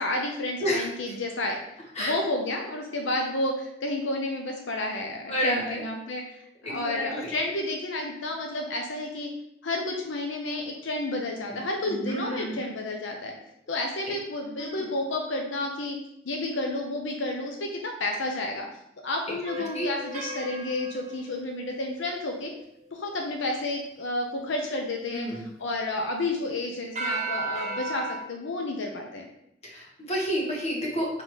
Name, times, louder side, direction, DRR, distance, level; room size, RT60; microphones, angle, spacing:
voice 1, 0.0-1.6 2.0-6.4 6.6-9.3 9.6-13.3 13.7-16.0 16.2-18.7 19.0-22.5 22.9-29.2, left 2 dB, 85° left, 2 dB, 0.7 m, -31 dB
voice 2, 5.3-5.8 6.6-7.4 11.9-12.6 14.6-14.9 19.7-19.9 25.1-25.4 29.6-31.1, equal, 35° left, -3 dB, 1.7 m, -30 dB
sound 1, 19.4-22.4 27.0-28.2, right 3 dB, 40° right, 1.0 m, -34 dB
5.8 x 3.8 x 4.8 m, 0.82 s
head